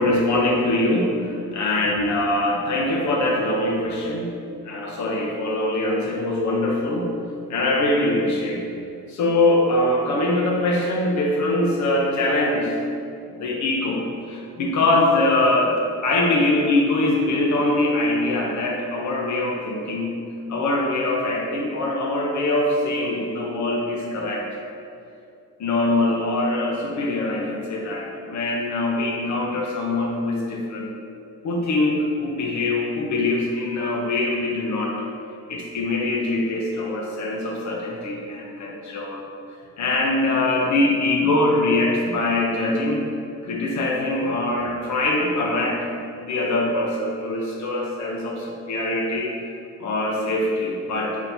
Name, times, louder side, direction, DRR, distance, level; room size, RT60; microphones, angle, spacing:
voice 1, 0.0-4.3 4.6-7.1 7.5-8.6 9.1-12.7 13.3-15.7 16.0-20.1 20.5-24.5 25.6-30.9 31.4-35.0 35.5-39.2 39.8-43.1 43.4-45.8 46.2-49.3 49.8-51.2, left 2 dB, 70° left, -1 dB, 0.9 m, -23 dB
4.1 x 2.9 x 4.0 m, 2.5 s
cardioid pair, 90°, 30 cm